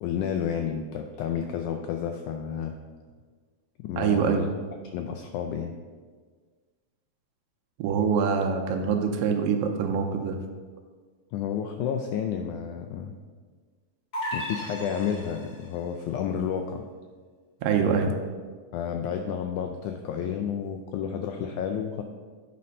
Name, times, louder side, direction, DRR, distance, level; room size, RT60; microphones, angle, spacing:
voice 1, 0.0-2.8 3.8-4.5 4.9-5.7 11.3-13.1 14.3-16.9 18.7-22.0, left 8 dB, 85° left, 5 dB, 1.7 m, -31 dB
voice 2, 4.0-4.5 7.8-10.4 17.6-18.1, right 6 dB, 85° right, 3 dB, 2.3 m, -24 dB
sound 1, 14.1-15.8, equal, 45° left, 1.0 m, -35 dB
9.7 x 4.3 x 5.3 m, 1.5 s
omnidirectional pair, 4.0 m